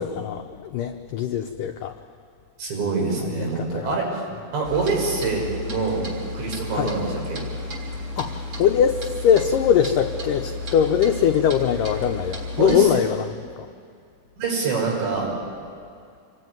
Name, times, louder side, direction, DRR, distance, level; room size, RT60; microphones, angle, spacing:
voice 1, 0.0-1.9 3.6-4.0 6.7-6.9 8.2-13.7, left 8 dB, 90° left, 5 dB, 1.8 m, -22 dB
voice 2, 2.6-4.2 4.5-6.0 6.3-7.4 12.6-12.9 14.4-15.3, right 4 dB, 85° right, -1 dB, 8.1 m, -25 dB
Clock, 4.6-12.8, left 2 dB, 35° right, 4.3 m, -33 dB
27.0 x 21.5 x 9.5 m, 2.3 s
omnidirectional pair, 5.0 m